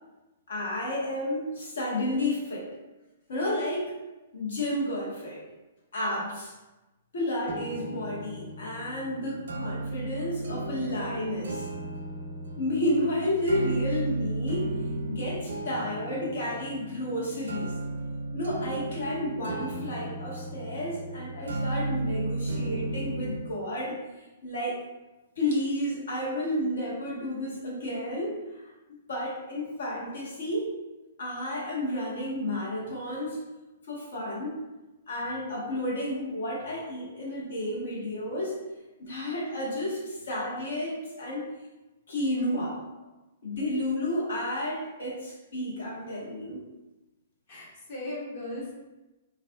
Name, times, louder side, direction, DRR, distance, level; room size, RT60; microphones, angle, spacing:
voice 1, 0.5-2.7 3.3-3.9 4.3-5.4 5.9-6.5 7.1-11.7 12.6-14.7 15.1-17.7 18.3-24.0 24.4-24.8 25.4-28.6 29.1-30.7 31.2-33.4 33.9-34.6 35.1-38.5 39.0-41.5 42.1-42.8 43.4-46.6, left 1 dB, 80° left, -4 dB, 1.2 m, -31 dB
sound 1, 7.5-23.5, right 2 dB, 85° right, 0.4 m, -34 dB
voice 2, 47.5-48.7, left 1 dB, 50° left, -4 dB, 1.1 m, -38 dB
4.0 x 2.4 x 2.2 m, 1.1 s
hypercardioid pair, 150°, 0 cm